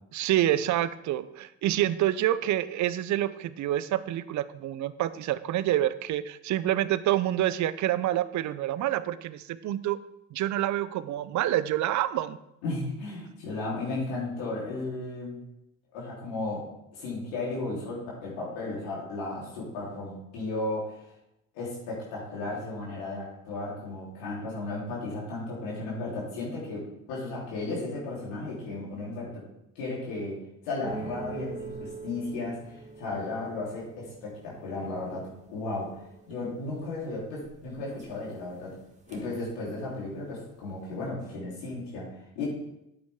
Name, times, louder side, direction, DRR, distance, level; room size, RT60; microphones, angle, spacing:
voice 1, 0.1-10.0 10.3-12.4, right 13 dB, 55° right, 16 dB, 0.6 m, -27 dB
voice 2, 12.6-15.4 15.9-21.0 21.5-29.5 29.8-32.6 33.0-36.0 36.3-38.8 39.1-42.5, left 2 dB, 80° left, -5 dB, 3.6 m, -35 dB
sound 1, 30.8-40.1 40.4-40.9, right 4 dB, 20° right, 2.0 m, -45 dB
8.6 x 8.1 x 3.6 m, 0.84 s
hypercardioid pair, 65°, 35 cm